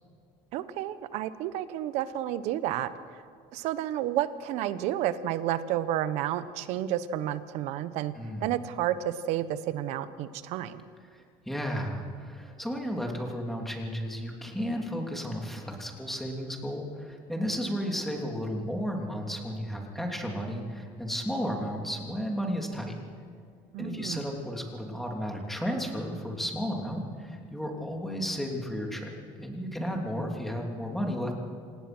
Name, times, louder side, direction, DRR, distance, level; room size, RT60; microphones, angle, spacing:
voice 1, 0.5-3.2 3.5-8.1 8.4-10.8 23.7-24.3, right 12 dB, 70° right, 13 dB, 1.1 m, -31 dB
voice 2, 8.2-8.5 11.1-23.0 23.8-31.3, equal, ahead, 1 dB, 3.3 m, -33 dB
26.5 x 18.0 x 6.2 m, 2.2 s
cardioid pair, 130°, 12 cm